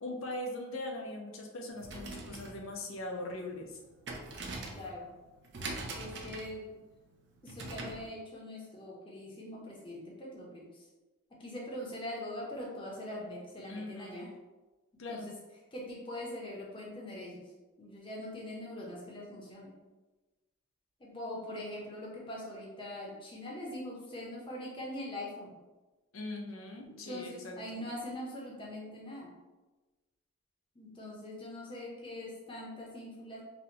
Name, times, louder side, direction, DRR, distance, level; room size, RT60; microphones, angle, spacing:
voice 1, 0.0-3.8 13.7-14.3 15.0-15.3 26.1-27.8, left 1 dB, 75° left, 2 dB, 0.6 m, -41 dB
sound 1, 1.7-8.1, right 2 dB, 55° right, 0.5 m, -44 dB
voice 2, 4.7-5.1 5.9-6.8 7.4-10.9 11.4-14.3 15.1-15.3 15.7-17.5 17.8-19.7 21.0-25.5 26.8-29.3 30.7-33.4, left 1 dB, 25° left, -3 dB, 0.7 m, -42 dB
4.2 x 2.2 x 2.8 m, 1.2 s
head